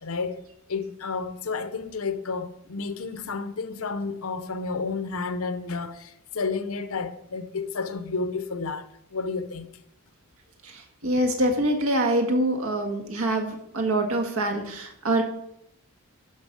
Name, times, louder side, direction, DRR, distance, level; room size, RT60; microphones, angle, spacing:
voice 1, 0.0-0.4 0.7-9.7, left 4 dB, 80° left, 0.8 m, -31 dB
voice 2, 10.6-15.2, right 1 dB, 75° right, 1.6 m, -25 dB
12.0 x 5.7 x 5.2 m
head